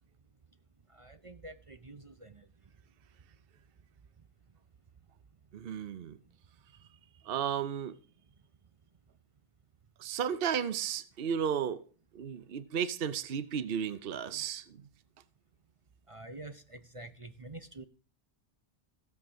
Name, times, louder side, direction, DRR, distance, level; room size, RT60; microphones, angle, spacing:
voice 1, 1.2-2.0 16.1-16.5 16.9-17.8, right 2 dB, 35° right, 0.7 m, -46 dB
voice 2, 5.5-6.2 7.2-8.0 10.0-11.8 12.1-14.8, right 8 dB, 55° right, 1.0 m, -34 dB
16.0 x 7.2 x 6.2 m
omnidirectional pair, 1.2 m